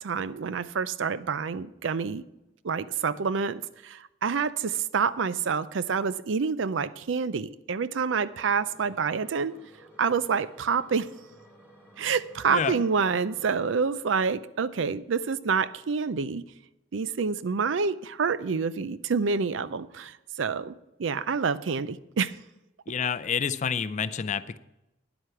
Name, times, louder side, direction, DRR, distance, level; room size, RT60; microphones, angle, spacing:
voice 1, 0.0-2.2 2.6-9.6 10.0-11.1 12.0-16.4 16.9-20.7 21.0-22.4, right 5 dB, 75° right, 0.5 m, -27 dB
sound 1, 8.2-13.5, right 1 dB, 5° right, 2.1 m, -54 dB
voice 2, 22.9-24.6, left 6 dB, 40° left, 0.4 m, -28 dB
10.0 x 7.9 x 5.8 m
head